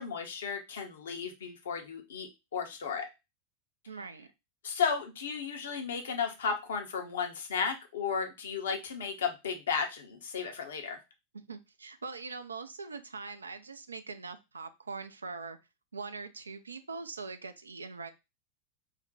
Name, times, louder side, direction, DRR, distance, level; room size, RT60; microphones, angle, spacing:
voice 1, 0.0-3.1 4.6-11.0, left 6 dB, 65° left, 4 dB, 0.7 m, -34 dB
voice 2, 3.9-4.3 11.3-15.6 15.9-18.1, right 4 dB, 80° right, 9 dB, 0.4 m, -42 dB
2.5 x 2.1 x 3.9 m, 0.25 s
figure-of-eight pair, 90°, 0 cm